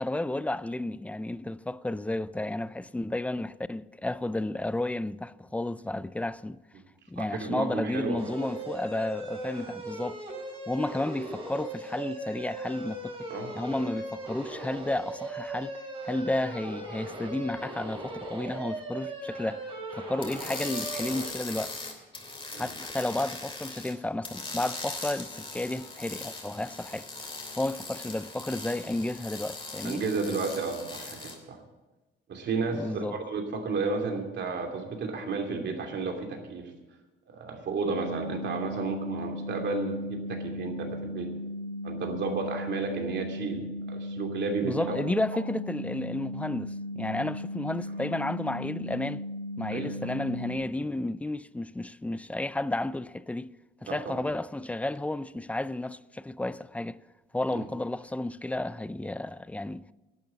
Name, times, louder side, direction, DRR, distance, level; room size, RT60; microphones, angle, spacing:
voice 1, 0.0-6.6 7.1-10.2 10.7-13.1 13.5-15.7 16.0-19.6 19.9-21.7 22.6-27.1 27.6-30.0 32.7-33.2 44.6-49.2 49.6-53.5 53.8-57.0 57.3-59.8, left 1 dB, 5° left, 0.4 m, -32 dB
voice 2, 7.2-8.2 13.3-13.5 22.5-22.7 29.8-31.6 32.3-36.7 37.3-41.3 41.8-43.6 43.9-45.0 49.7-49.9 53.9-54.2 57.5-57.6, right 4 dB, 60° right, 2.8 m, -32 dB
sound 1, 8.2-21.3, right 1 dB, 30° right, 3.8 m, -38 dB
sound 2, 20.2-23.9 24.2-31.3, left 3 dB, 25° left, 3.1 m, -40 dB
sound 3, 37.8-50.5, left 1 dB, 80° left, 4.8 m, -37 dB
11.5 x 9.0 x 7.8 m
cardioid pair, 90°, 20 cm